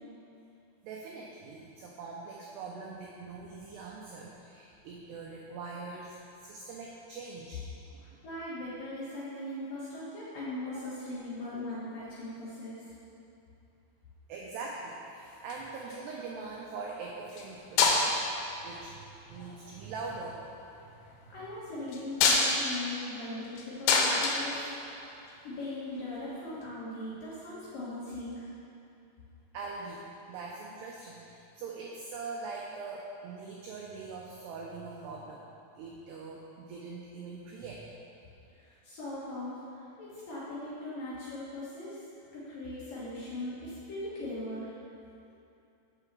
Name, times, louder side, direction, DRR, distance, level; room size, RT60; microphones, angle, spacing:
voice 1, 0.8-7.6 8.1-8.2 14.3-18.2 18.6-20.4 20.8-21.4 29.5-35.5 35.8-37.8, right 4 dB, 90° right, -2 dB, 2.3 m, -42 dB
voice 2, 8.0-12.9 21.3-24.7 25.4-28.5 38.5-42.0 42.3-44.7, left 1 dB, 60° left, -9 dB, 2.4 m, -39 dB
sound 1, 15.3-16.2 17.3-17.5 17.8-18.4 19.4-19.8 21.9-25.3 26.6-26.7, left 4 dB, 80° left, 3.3 m, -27 dB
7.9 x 5.7 x 6.8 m, 2.7 s
omnidirectional pair, 5.8 m